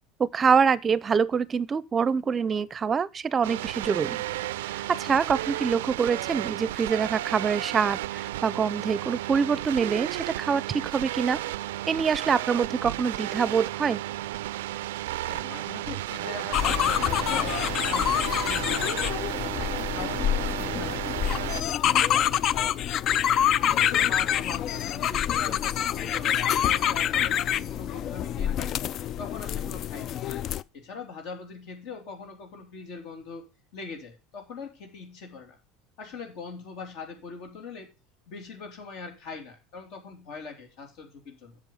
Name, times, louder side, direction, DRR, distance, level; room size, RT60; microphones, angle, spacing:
voice 1, 0.2-4.2 4.6-11.4 11.9-14.0, right 6 dB, 30° right, 0.6 m, -25 dB
sound 1, 3.4-21.6, right 15 dB, 85° right, 0.4 m, -33 dB
voice 2, 15.2-19.1 19.6-22.9 23.6-28.8 29.2-30.2 30.7-35.6 36.0-37.9 38.3-41.6, left 4 dB, 65° left, 3.1 m, -41 dB
sound 2, 16.5-30.6, left 10 dB, 45° left, 0.4 m, -26 dB
7.5 x 6.9 x 5.5 m
supercardioid pair, 100°, 0 cm